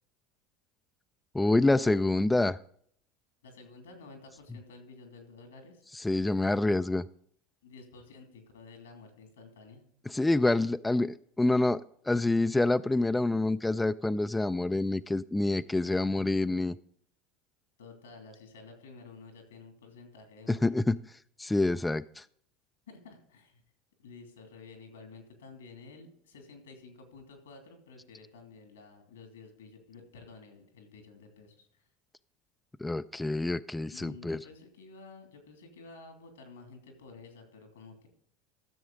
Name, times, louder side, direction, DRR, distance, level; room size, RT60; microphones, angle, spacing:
voice 1, 1.3-2.6 6.0-7.0 10.1-16.8 20.5-21.0 21.4-22.2 32.8-34.4, left 2 dB, 10° left, 12 dB, 0.4 m, -27 dB
voice 2, 3.4-5.8 7.6-9.9 17.8-20.7 22.9-23.6 24.0-31.9 33.9-38.1, left 4 dB, 80° left, 5 dB, 2.5 m, -51 dB
13.5 x 6.9 x 3.8 m, 0.64 s
hypercardioid pair, 75°, 0 cm